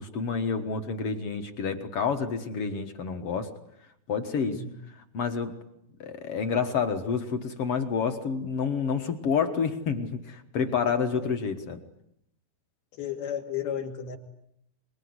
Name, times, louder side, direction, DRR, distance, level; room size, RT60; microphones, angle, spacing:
voice 1, 0.0-3.5 4.1-5.6 6.0-11.8, left 6 dB, 55° left, 7 dB, 1.8 m, -29 dB
voice 2, 10.9-11.3 13.0-14.2, left 8 dB, 80° left, 3 dB, 4.4 m, -34 dB
24.5 x 21.5 x 9.6 m, 0.76 s
omnidirectional pair, 4.3 m